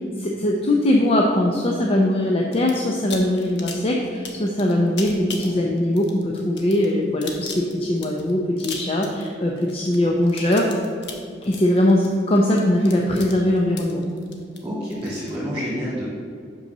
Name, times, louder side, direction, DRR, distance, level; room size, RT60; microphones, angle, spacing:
voice 1, 0.2-10.7 11.5-14.0, left 1 dB, 35° left, 0 dB, 0.6 m, -21 dB
sound 1, 2.5-2.8 3.1-15.4, left 5 dB, 70° left, 1.1 m, -37 dB
voice 2, 5.4-5.7 14.6-16.0, equal, 15° right, -8 dB, 1.9 m, -29 dB
5.6 x 5.4 x 6.6 m, 2.2 s
head